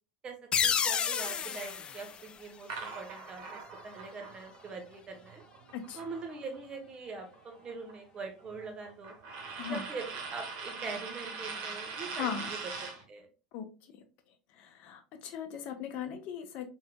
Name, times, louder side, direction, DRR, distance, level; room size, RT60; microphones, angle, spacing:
voice 1, 0.2-5.4 5.9-9.1 9.7-12.6 13.1-13.3, right 4 dB, 25° right, 4 dB, 1.2 m, -43 dB
sound 1, 0.5-3.1, left 7 dB, 25° left, 0.3 m, -31 dB
sound 2, 2.7-6.8 7.1-13.0, right 4 dB, 45° right, 1.1 m, -42 dB
voice 2, 12.1-12.5 13.5-13.7 14.5-16.7, left 8 dB, 45° left, 7 dB, 0.8 m, -38 dB
4.4 x 4.0 x 2.2 m, 0.33 s
figure-of-eight pair, 80°, 4 cm